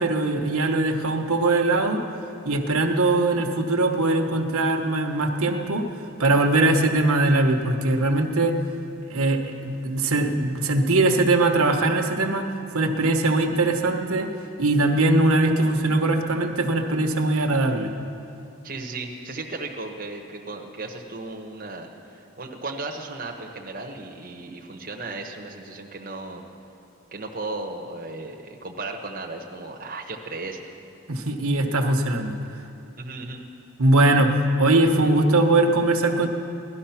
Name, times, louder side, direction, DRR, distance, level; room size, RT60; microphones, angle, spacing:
voice 1, 0.0-2.0 2.4-5.9 6.2-8.6 9.1-12.5 12.7-14.3 14.6-17.9 31.1-32.3 33.8-36.3, right 2 dB, 80° right, 4 dB, 1.2 m, -21 dB
voice 2, 18.6-26.4 27.1-30.8 33.0-33.4, right 3 dB, 40° right, 1 dB, 1.1 m, -35 dB
17.5 x 12.0 x 5.8 m, 2.6 s
head